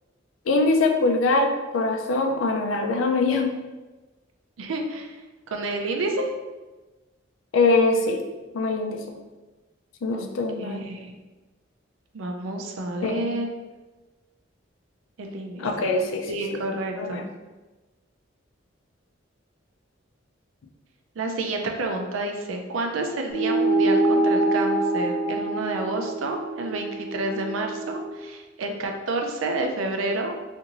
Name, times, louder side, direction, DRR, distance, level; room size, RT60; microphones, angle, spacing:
voice 1, 0.5-3.5 7.5-8.2 8.5-9.0 10.0-10.9 13.0-13.3 15.6-16.3 17.0-17.2, left 3 dB, 80° left, 3 dB, 0.4 m, -23 dB
voice 2, 4.6-5.2 5.5-6.3 10.1-10.3 10.6-11.1 12.1-13.5 15.2-15.9 16.3-17.3 21.2-30.4, right 2 dB, 85° right, 3 dB, 0.4 m, -29 dB
sound 1, 23.3-28.1, right 2 dB, 20° left, 0.5 m, -25 dB
2.5 x 2.5 x 2.9 m, 1.2 s
head